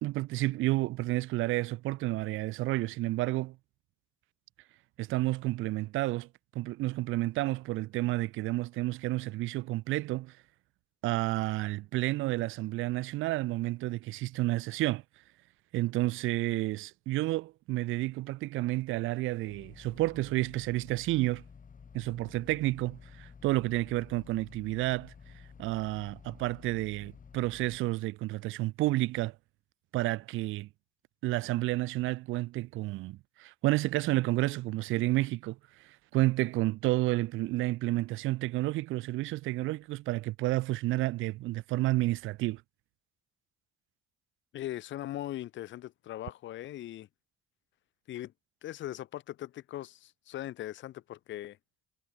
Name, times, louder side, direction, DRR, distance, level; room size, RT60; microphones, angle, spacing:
voice 1, 0.0-3.6 5.0-6.3 6.5-10.3 11.0-15.0 15.7-21.4 21.9-25.1 25.6-29.3 29.9-30.7 31.2-35.6 35.8-42.6, right 18 dB, 85° right, 0.5 m, -30 dB
sound 1, 19.5-27.8, left 6 dB, 40° left, 6.9 m, -52 dB
voice 2, 44.5-47.1 48.1-48.3 48.6-51.6, left 13 dB, 70° left, 0.7 m, -40 dB
cardioid pair, 90°, 20 cm